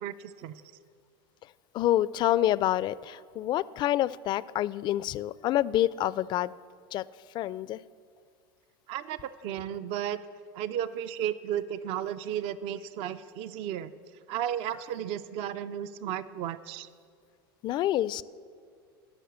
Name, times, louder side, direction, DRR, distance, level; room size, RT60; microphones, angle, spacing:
voice 1, 0.0-0.6 8.9-10.2 10.5-13.9 14.3-16.9, right 10 dB, 55° right, 14 dB, 0.5 m, -34 dB
voice 2, 1.7-6.5 6.9-7.1 7.3-7.8 17.6-18.2, left 13 dB, 40° left, 19 dB, 0.3 m, -27 dB
13.0 x 6.0 x 8.1 m, 2.2 s
hypercardioid pair, 95°, 12 cm